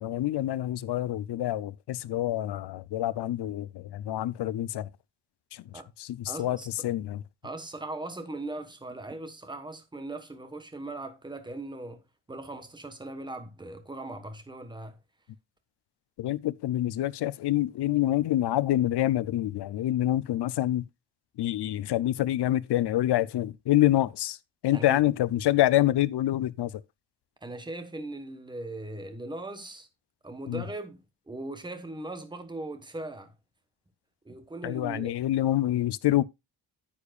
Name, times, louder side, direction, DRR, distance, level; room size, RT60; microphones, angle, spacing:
voice 1, 0.0-4.9 5.5-5.6 6.0-6.6 6.8-7.2 16.2-20.8 21.4-24.4 24.6-26.7 30.5-30.6 34.6-36.2, left 14 dB, 65° left, 0.6 m, -26 dB
voice 2, 6.3-6.9 7.4-15.0 24.7-25.0 27.4-29.9 30.2-33.3 34.2-35.2, right 2 dB, 10° right, 1.1 m, -39 dB
9.8 x 8.6 x 2.4 m
wide cardioid pair, 155°, 44 cm